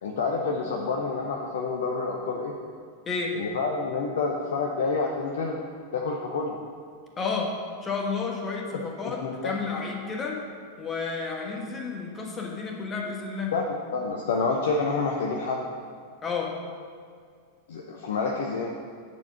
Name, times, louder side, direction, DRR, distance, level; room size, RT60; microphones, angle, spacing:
voice 1, 0.0-2.5 3.3-5.6 5.9-6.6 9.0-9.6 13.5-13.6 13.9-15.6 17.7-18.7, left 4 dB, 60° left, 0 dB, 0.7 m, -28 dB
voice 2, 3.1-3.4 7.2-7.5 7.8-10.4 10.8-13.5 16.2-16.5, left 4 dB, 20° left, 0 dB, 1.4 m, -31 dB
9.6 x 4.6 x 5.6 m, 2.1 s
figure-of-eight pair, 90°, 0 cm